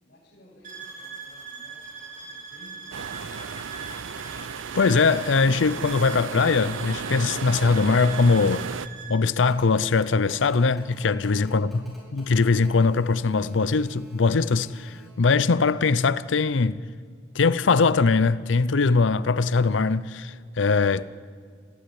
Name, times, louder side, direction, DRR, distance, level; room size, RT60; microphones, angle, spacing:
voice 1, 0.0-3.5 11.3-11.6, equal, 55° left, 7.9 m, -54 dB
sound 1, 0.6-9.2, right 5 dB, 45° right, 5.7 m, -41 dB
sound 2, 2.9-8.9, right 6 dB, 85° right, 0.6 m, -34 dB
voice 2, 4.7-8.7 9.1-11.7 12.1-16.8 17.3-21.0, left 4 dB, 70° left, 0.6 m, -21 dB
Telephone, 9.4-15.1, right 1 dB, ahead, 6.3 m, -50 dB
21.5 x 15.5 x 9.9 m
head